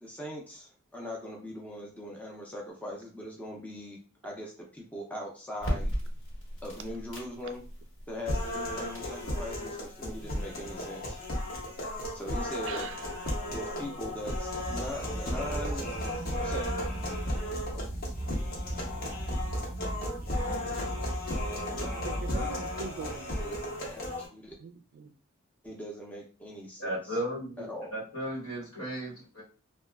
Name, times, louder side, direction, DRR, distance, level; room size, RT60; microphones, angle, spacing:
voice 1, 0.0-4.0 4.2-5.9 6.6-7.6 8.1-11.2 12.1-12.9 13.5-15.9 16.4-16.8 17.3-17.4 17.7-17.9 23.4-23.6 23.9-24.0 24.3-24.6 25.6-27.0 27.6-27.9, equal, 10° left, -1 dB, 0.5 m, -40 dB
sound 1, 5.6-19.1, equal, 65° left, 1.3 m, -42 dB
sound 2, 8.3-24.3, left 1 dB, 45° left, 0.7 m, -35 dB
voice 2, 12.6-13.3 22.0-23.4 24.6-25.1, right 5 dB, 65° right, 9 dB, 0.3 m, -41 dB
sound 3, 14.2-23.3, right 1 dB, 30° right, 0.7 m, -37 dB
voice 3, 26.8-29.4, right 1 dB, 85° left, -4 dB, 1.2 m, -35 dB
2.8 x 2.3 x 2.2 m, 0.37 s
head